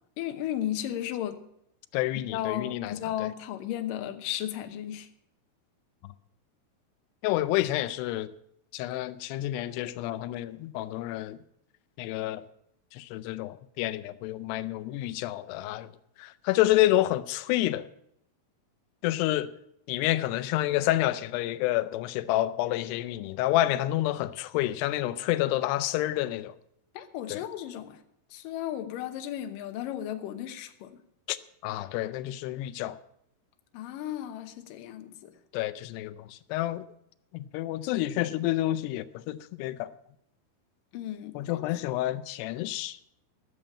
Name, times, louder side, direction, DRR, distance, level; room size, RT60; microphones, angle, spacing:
voice 1, 0.2-1.4 2.2-5.1 26.9-28.0 28.3-31.0 33.7-35.3 40.9-41.6, left 11 dB, 70° left, 2.4 m, -35 dB
voice 2, 1.9-3.3 6.0-6.1 7.2-8.3 8.7-11.4 12.0-12.4 12.9-15.9 16.2-17.9 19.0-19.5 19.9-26.6 27.3-27.4 31.3-31.4 31.6-33.0 35.5-36.8 37.3-39.9 41.4-43.0, left 15 dB, 90° left, 2.7 m, -29 dB
14.5 x 7.2 x 8.6 m
omnidirectional pair, 4.6 m